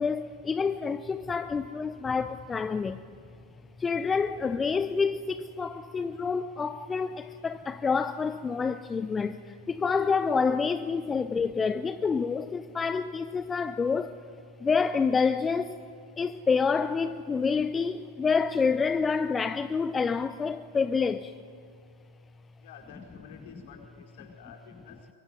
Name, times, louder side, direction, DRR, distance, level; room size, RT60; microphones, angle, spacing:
voice 1, 0.0-3.0 3.8-14.2 14.6-15.9 16.2-21.3, left 5 dB, 15° left, 0.7 m, -28 dB
voice 2, 22.6-25.1, left 6 dB, 55° left, 4.5 m, -50 dB
24.0 x 22.5 x 9.7 m
figure-of-eight pair, 90°, 0 cm